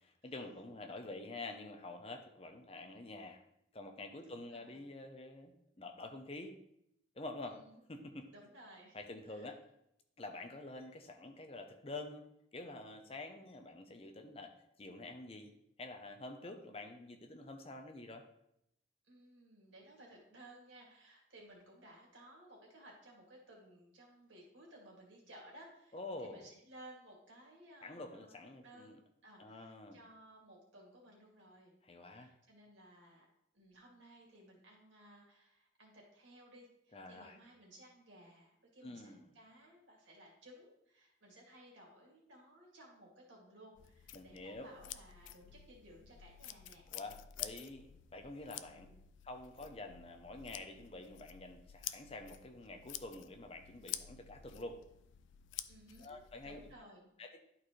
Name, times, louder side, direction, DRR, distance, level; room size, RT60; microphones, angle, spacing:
voice 1, 0.0-3.4 3.7-6.5 7.2-7.6 7.9-8.3 8.9-9.6 10.2-12.2 12.5-14.5 14.8-15.5 15.8-18.2 25.9-26.5 27.8-29.0 29.4-30.0 31.8-32.3 36.9-37.4 38.8-39.3 44.1-44.7 46.9-48.9 49.2-54.8 56.0-56.6 57.2-57.4, left 2 dB, 30° left, 5 dB, 0.7 m, -48 dB
voice 2, 4.3-4.9 7.5-7.8 8.3-9.0 9.3-9.5 19.0-28.3 28.6-29.0 29.2-31.7 32.1-33.2 33.5-46.8 48.7-49.1 55.7-57.1, right 1 dB, 90° right, -2 dB, 2.2 m, -58 dB
sound 1, 43.8-56.8, left 12 dB, 85° left, 0.4 m, -50 dB
11.0 x 4.2 x 3.1 m, 0.79 s
head